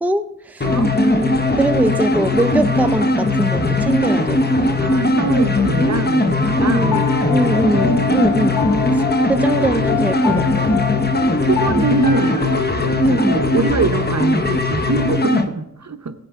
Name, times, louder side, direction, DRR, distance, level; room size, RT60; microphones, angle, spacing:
voice 1, 0.0-0.7 0.9-4.8 6.5-8.6 8.9-10.7 13.1-13.5, right 1 dB, 5° right, 8 dB, 0.5 m, -22 dB
sound 1, 0.6-15.5, left 2 dB, 30° left, 0.9 m, -19 dB
voice 2, 0.6-0.9 4.8-7.0 7.7-8.3 8.6-8.9 11.4-12.4 13.0-16.1, right 4 dB, 60° right, 8 dB, 0.8 m, -24 dB
sound 2, 0.9-8.7, right 2 dB, 30° right, 3.6 m, -36 dB
Piano, 6.9-13.7, left 4 dB, 65° left, 0.9 m, -25 dB
17.5 x 7.8 x 3.6 m, 0.81 s
wide cardioid pair, 60°, 31 cm